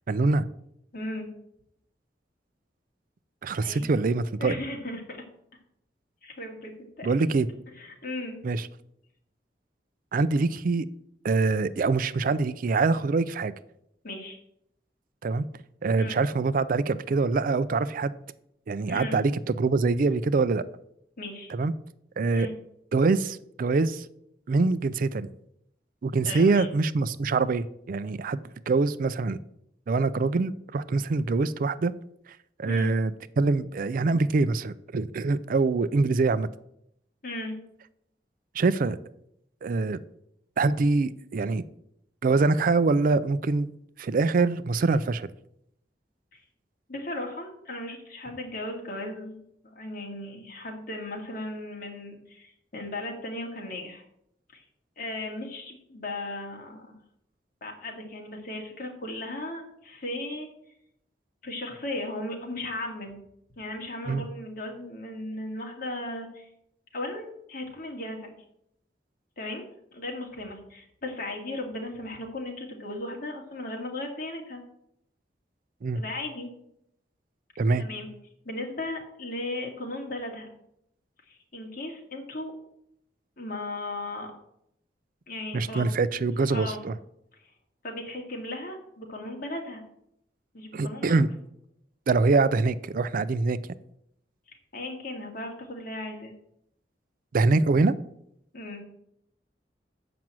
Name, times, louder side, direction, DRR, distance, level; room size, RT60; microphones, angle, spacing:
voice 1, 0.1-0.4 3.4-4.5 7.0-7.5 8.4-8.7 10.1-10.9 11.2-13.5 15.2-15.5 15.8-18.1 18.7-19.3 19.6-20.6 21.5-21.7 22.2-22.5 22.9-24.1 24.5-25.3 26.0-28.4 28.7-29.4 29.9-31.9 32.6-36.5 38.5-39.0 39.6-40.0 40.6-41.6 42.2-43.7 44.0-45.3 64.1-64.3 75.8-76.0 77.6-77.8 85.5-86.9 90.7-91.3 92.1-93.6 97.3-98.0, right 3 dB, 50° right, 15 dB, 0.4 m, -24 dB
voice 2, 0.9-1.3 3.6-3.9 4.4-5.2 6.2-6.7 7.0-7.1 7.8-8.4 14.0-14.4 16.0-16.2 18.9-19.2 21.2-21.5 22.3-22.5 26.2-26.7 32.7-32.9 37.2-37.6 46.3-46.4 46.9-54.0 54.5-54.6 55.0-56.9 57.6-60.5 61.4-63.2 63.6-66.5 66.9-68.3 69.4-69.6 69.9-74.6 75.9-76.5 77.8-78.1 78.4-80.5 81.3-82.5 83.4-84.3 85.3-85.9 86.5-86.8 87.4-87.5 87.8-89.8 90.5-91.2 94.5-96.3 98.5-98.8, left 1 dB, 55° left, 1 dB, 2.2 m, -36 dB
7.7 x 5.9 x 7.4 m, 0.76 s
head